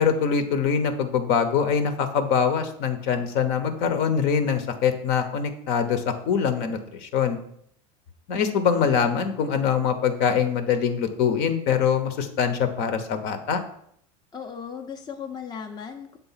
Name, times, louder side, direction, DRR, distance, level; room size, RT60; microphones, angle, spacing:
voice 1, 0.0-7.4 8.3-13.6, left 7 dB, 60° left, 8 dB, 0.9 m, -23 dB
voice 2, 8.4-9.0 14.3-16.2, left 7 dB, 20° left, 5 dB, 0.6 m, -37 dB
7.1 x 3.8 x 5.7 m, 0.69 s
supercardioid pair, 115°, 19 cm